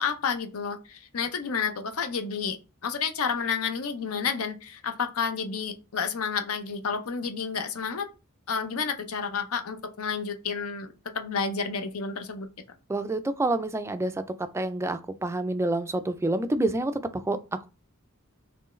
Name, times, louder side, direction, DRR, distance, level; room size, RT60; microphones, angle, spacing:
voice 1, 0.0-2.6 2.8-8.1 8.5-12.5, left 6 dB, 75° left, 0.6 m, -30 dB
voice 2, 12.9-14.1 14.5-17.4, right 2 dB, 10° right, 0.3 m, -27 dB
4.5 x 3.1 x 3.1 m
head